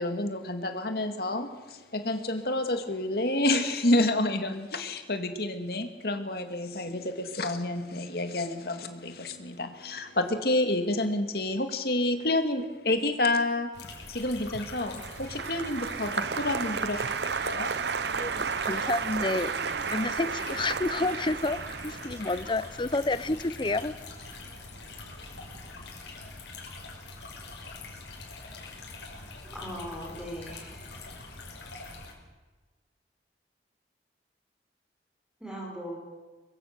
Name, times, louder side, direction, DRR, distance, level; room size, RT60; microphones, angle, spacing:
voice 1, 0.0-13.7 14.1-17.0 17.4-17.7, left 1 dB, 60° left, 7 dB, 2.3 m, -29 dB
sound 1, 13.7-32.1, left 3 dB, 80° left, 5.5 m, -44 dB
Applause, 14.4-24.8 25.1-25.7, right 5 dB, 70° right, 0.8 m, -33 dB
voice 2, 18.1-19.5 19.9-24.0, left 2 dB, 25° left, 15 dB, 0.6 m, -30 dB
voice 3, 29.4-31.2 35.4-36.0, equal, 5° right, -2 dB, 5.3 m, -40 dB
23.5 x 22.0 x 6.8 m, 1.3 s
head